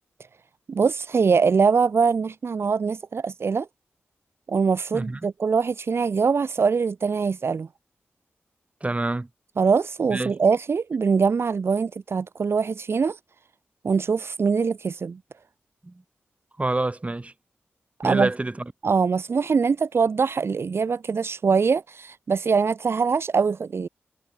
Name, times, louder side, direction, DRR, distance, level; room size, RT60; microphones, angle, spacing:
voice 1, 0.7-3.7 4.5-7.7 9.6-13.2 13.8-15.2 18.0-18.3 18.8-23.9, right 5 dB, 65° right, 0.8 m, -23 dB
voice 2, 8.8-9.3 10.1-10.3 15.8-16.0 16.6-17.3 18.0-18.7, right 2 dB, 30° right, 2.8 m, -27 dB
cardioid pair, 45°, 5 cm